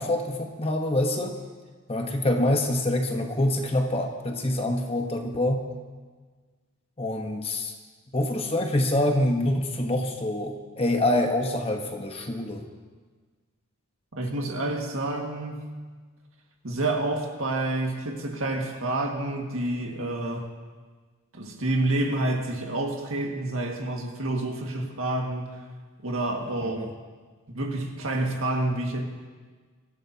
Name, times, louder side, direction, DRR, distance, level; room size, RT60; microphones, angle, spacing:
voice 1, 0.0-1.4 1.9-5.6 7.0-7.7 8.1-12.7 26.6-26.9, left 1 dB, 25° left, 3 dB, 1.1 m, -26 dB
voice 2, 14.1-15.6 16.6-20.5 21.3-25.6 26.0-26.9 27.5-29.0, right 2 dB, 70° right, 1 dB, 1.9 m, -28 dB
23.5 x 14.5 x 2.8 m, 1.4 s
head